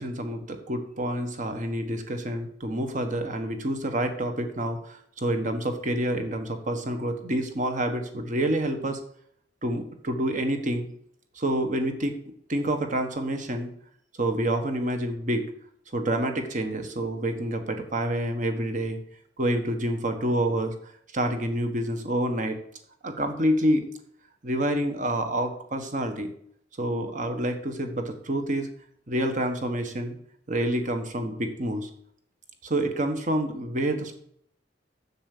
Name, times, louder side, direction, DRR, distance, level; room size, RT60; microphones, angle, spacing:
voice 1, 0.0-9.0 9.6-10.9 11.4-13.7 14.2-15.5 15.9-19.0 19.4-20.7 21.1-22.6 23.0-23.8 24.4-26.3 26.8-28.7 29.1-30.2 30.5-31.9 32.6-34.2, right 1 dB, 45° right, 6 dB, 1.4 m, -28 dB
7.3 x 7.2 x 6.7 m, 0.66 s
head